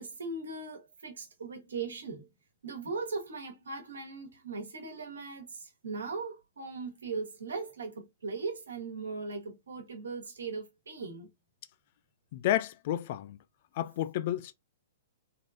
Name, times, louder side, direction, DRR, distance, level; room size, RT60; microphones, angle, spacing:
voice 1, 0.0-2.3 2.6-11.3, right 4 dB, 65° right, 1.5 m, -39 dB
voice 2, 12.3-13.4 13.7-14.5, left 13 dB, 45° left, 0.4 m, -31 dB
3.7 x 3.7 x 2.4 m
figure-of-eight pair, 110°, 0 cm